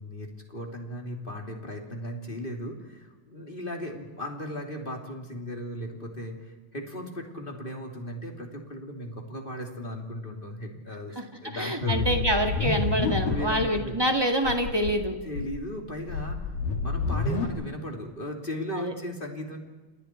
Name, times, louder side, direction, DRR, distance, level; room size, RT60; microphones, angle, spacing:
voice 1, 0.0-12.1 13.3-14.0 15.2-16.5 16.8-19.6, equal, 15° left, 2 dB, 2.7 m, -37 dB
voice 2, 11.5-15.1 18.7-18.9, equal, 10° right, 4 dB, 1.4 m, -26 dB
sound 1, 11.8-13.7 14.0-14.1 14.4-14.9 15.3-17.4, left 4 dB, 90° left, 4.6 m, -28 dB
29.5 x 29.5 x 4.6 m, 1.2 s
omnidirectional pair, 4.0 m